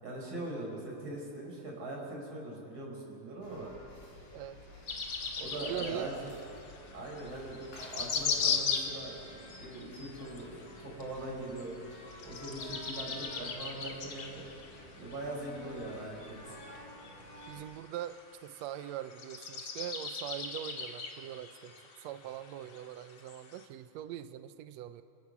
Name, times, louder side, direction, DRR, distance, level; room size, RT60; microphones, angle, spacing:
voice 1, 0.0-3.7 5.4-6.3 6.9-12.0 12.2-14.4 15.0-16.5, right 2 dB, 35° right, -2 dB, 6.0 m, -41 dB
sound 1, 3.4-17.6, left 1 dB, 80° left, 5.7 m, -51 dB
voice 2, 4.3-4.6 5.6-6.2 16.5-16.6 17.5-21.7 22.0-25.0, right 12 dB, 90° right, 11 dB, 1.5 m, -42 dB
sound 2, 4.9-23.6, left 5 dB, 45° left, 2.3 m, -39 dB
28.5 x 15.5 x 7.0 m, 2.6 s
omnidirectional pair, 4.0 m